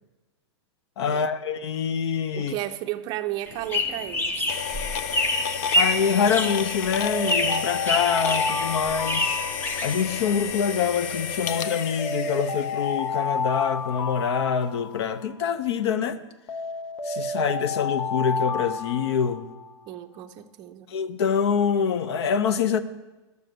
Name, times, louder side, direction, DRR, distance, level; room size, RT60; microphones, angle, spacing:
voice 1, 1.0-2.5 5.7-9.4 9.8-16.2 17.0-19.5 20.9-22.8, left 7 dB, 65° left, 0.8 m, -25 dB
voice 2, 2.3-4.4 19.9-20.9, right 14 dB, 30° right, 0.6 m, -33 dB
sound 1, 3.5-10.5, left 1 dB, 15° left, 0.9 m, -27 dB
sound 2, 4.5-13.4, left 7 dB, 35° left, 0.5 m, -32 dB
Alarm, 7.0-10.3 11.5-15.3 16.5-19.7, left 3 dB, 80° left, 1.5 m, -31 dB
12.0 x 6.7 x 6.8 m
hypercardioid pair, 150°, 15 cm